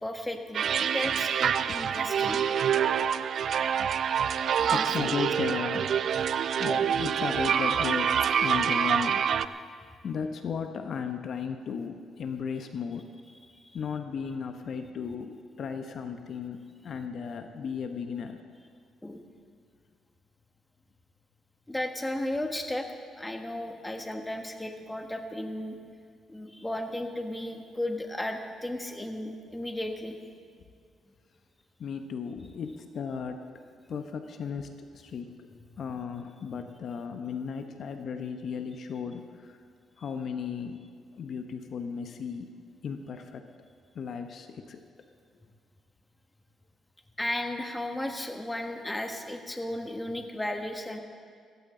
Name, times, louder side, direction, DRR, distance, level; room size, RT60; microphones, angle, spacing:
voice 1, 0.0-2.4 4.6-4.9 6.0-6.2 13.6-13.8 19.0-19.2 21.7-22.9 23.1-25.7 26.3-30.2 47.2-51.0, left 1 dB, 10° left, 4 dB, 1.4 m, -34 dB
sound 1, 0.5-9.5, right 8 dB, 65° right, 0.4 m, -26 dB
voice 2, 4.7-5.9 6.6-9.2 10.0-13.1 13.7-18.4 31.8-33.5 33.9-35.3 35.8-39.6 40.0-40.8 41.2-42.5 42.8-43.4 43.9-44.8, left 6 dB, 60° left, 7 dB, 0.9 m, -35 dB
16.5 x 15.5 x 3.9 m, 2.1 s
cardioid pair, 90°, 0 cm